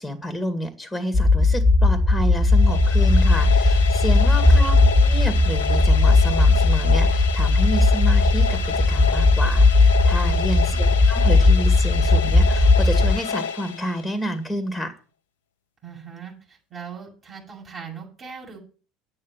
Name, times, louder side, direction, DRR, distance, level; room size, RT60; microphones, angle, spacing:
voice 1, 0.0-10.7 11.1-14.9, equal, 5° left, 9 dB, 2.2 m, -29 dB
sound 1, 1.1-13.1, left 2 dB, 30° left, 1.4 m, -17 dB
sound 2, 2.4-14.3, left 7 dB, 75° left, 1.1 m, -30 dB
voice 2, 4.1-4.8 10.2-10.8 15.8-18.6, right 7 dB, 35° right, -2 dB, 7.2 m, -40 dB
9.8 x 9.6 x 7.6 m, 0.39 s
figure-of-eight pair, 70°, 0 cm